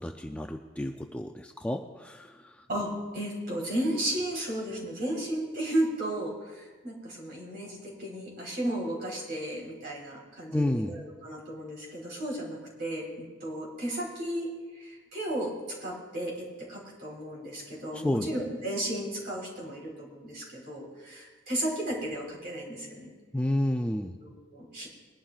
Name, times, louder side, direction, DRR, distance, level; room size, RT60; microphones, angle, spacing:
voice 1, 0.0-2.7 10.5-10.9 17.9-18.3 23.3-24.1, left 1 dB, 5° left, 4 dB, 0.4 m, -30 dB
voice 2, 2.7-23.1 24.2-24.9, right 1 dB, 50° right, -3 dB, 3.9 m, -34 dB
21.0 x 11.5 x 2.4 m, 1.3 s
head